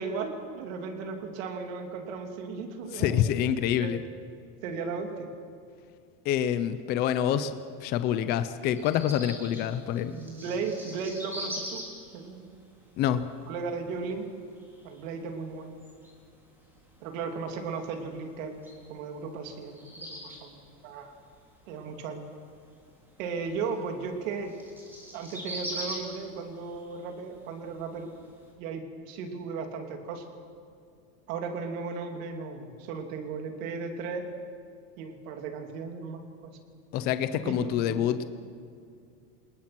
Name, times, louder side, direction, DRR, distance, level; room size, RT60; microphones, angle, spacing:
voice 1, 0.0-3.2 3.8-4.0 4.6-5.3 10.1-11.9 12.1-12.6 13.5-14.3 14.8-15.7 17.0-18.6 18.9-21.1 21.7-22.2 23.2-24.5 25.1-28.1 28.6-30.3 31.3-34.3 35.0-36.6 37.3-38.1, right 5 dB, 55° right, 4 dB, 3.1 m, -36 dB
voice 2, 2.9-4.0 6.2-7.5 7.8-10.1 13.0-13.3 36.9-38.2, left 10 dB, 20° left, 12 dB, 0.5 m, -27 dB
sound 1, 8.7-28.5, equal, 5° right, 3.3 m, -44 dB
27.5 x 19.5 x 6.1 m, 2.3 s
supercardioid pair, 175°, 47 cm